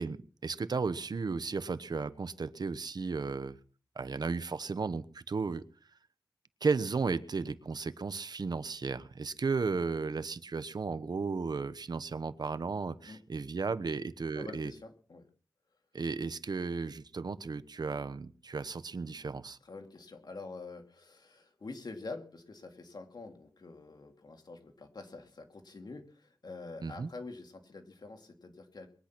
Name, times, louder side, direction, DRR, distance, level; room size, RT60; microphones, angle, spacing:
voice 1, 0.0-3.6 4.0-5.6 6.6-14.7 15.9-19.6 26.8-27.1, right 4 dB, 75° right, 1.0 m, -34 dB
voice 2, 14.3-15.3 19.6-28.9, left 3 dB, 75° left, 2.8 m, -46 dB
22.0 x 10.0 x 6.1 m
wide cardioid pair, 65°, 7 cm